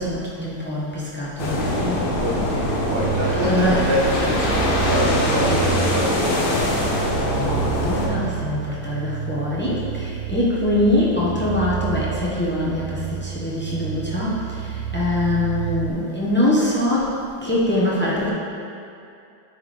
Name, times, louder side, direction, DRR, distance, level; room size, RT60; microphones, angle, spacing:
voice 1, 0.0-2.0 3.2-3.9 7.2-17.2 17.4-18.3, left 1 dB, 15° left, -7 dB, 0.3 m, -23 dB
sound 1, 1.4-8.1, left 1 dB, 90° left, 0.4 m, -23 dB
sound 2, 1.6-15.9, right 10 dB, 85° right, 0.8 m, -30 dB
voice 2, 2.1-6.5, equal, 55° right, -4 dB, 1.4 m, -25 dB
9.2 x 4.7 x 3.4 m, 2.6 s
omnidirectional pair, 2.2 m